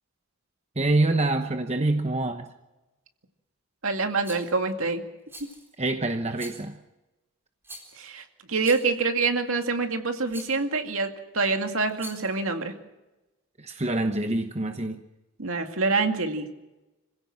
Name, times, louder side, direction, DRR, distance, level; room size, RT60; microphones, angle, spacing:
voice 1, 0.8-2.5 5.8-6.8 13.6-15.0, right 2 dB, 30° right, 1.0 m, -26 dB
voice 2, 3.8-5.0 8.0-11.1 11.3-12.7 15.4-16.5, right 4 dB, 70° right, 2.2 m, -26 dB
Rattle, 4.2-4.5 5.3-5.7 6.3-6.7 7.6-8.1 8.6-9.0 10.3-10.6 11.9-12.4, right 1 dB, 10° right, 4.1 m, -44 dB
26.5 x 16.5 x 7.6 m
head